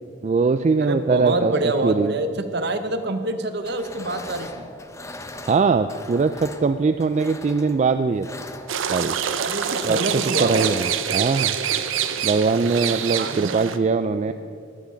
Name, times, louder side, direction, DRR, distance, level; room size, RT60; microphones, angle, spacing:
voice 1, 0.2-2.1 5.5-8.3 8.9-9.2 9.8-11.5 12.2-14.3, right 4 dB, 35° right, 10 dB, 0.3 m, -21 dB
voice 2, 0.8-4.7 9.4-10.9 13.2-13.5 14.3-14.4, right 2 dB, 60° right, 8 dB, 1.0 m, -26 dB
sound 1, 3.6-11.0, left 2 dB, 15° left, 0.7 m, -41 dB
sound 2, 8.7-13.8, right 8 dB, 85° right, 0.7 m, -26 dB
15.5 x 10.5 x 5.1 m, 2.4 s
head